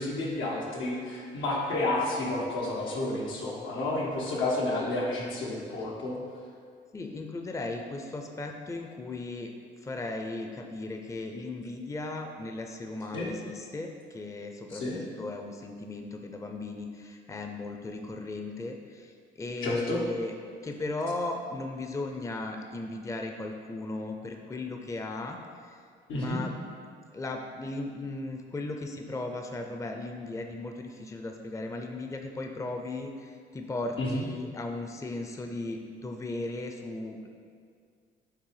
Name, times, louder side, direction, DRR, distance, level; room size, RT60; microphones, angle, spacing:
voice 1, 0.0-6.2 13.1-13.3 14.7-15.0 19.6-20.0 26.1-26.4 34.0-34.2, left 2 dB, 90° left, -4 dB, 1.3 m, -30 dB
voice 2, 6.9-9.5 9.8-20.3 20.6-25.8 26.1-26.5 27.1-37.3, left 2 dB, 15° left, 4 dB, 0.5 m, -36 dB
6.6 x 3.3 x 4.8 m, 2.1 s
cardioid pair, 90°, 20 cm